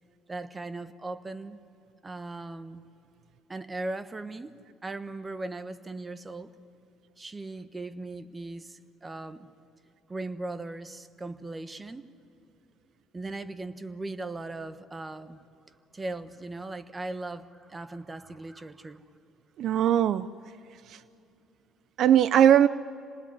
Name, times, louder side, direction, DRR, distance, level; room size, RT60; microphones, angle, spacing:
voice 1, 0.3-1.6 2.0-2.8 3.5-4.5 4.8-6.5 7.2-9.5 10.1-12.1 13.1-15.4 15.9-19.0, right 2 dB, 20° right, 12 dB, 1.2 m, -38 dB
voice 2, 19.6-20.3 20.9-21.0 22.0-22.7, right 10 dB, 60° right, 16 dB, 0.5 m, -20 dB
27.0 x 19.5 x 9.7 m, 2.6 s
supercardioid pair, 90°, 0 cm